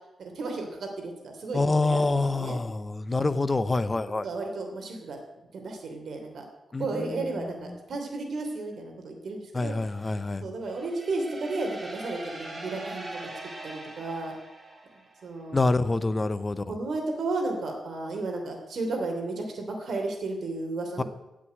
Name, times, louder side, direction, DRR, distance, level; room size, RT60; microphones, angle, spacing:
voice 1, 0.2-2.6 4.2-5.2 5.5-6.4 6.8-9.8 10.4-13.1 13.6-14.3 15.2-15.6 16.7-21.0, right 3 dB, 60° right, 2 dB, 3.2 m, -33 dB
voice 2, 1.5-4.3 6.7-7.8 9.5-10.4 15.5-16.8 21.0-21.1, left 3 dB, 20° left, 13 dB, 0.7 m, -27 dB
sound 1, 10.7-15.4, right 2 dB, 25° right, 3.1 m, -42 dB
16.0 x 6.3 x 9.5 m, 1.0 s
wide cardioid pair, 180°, 0 cm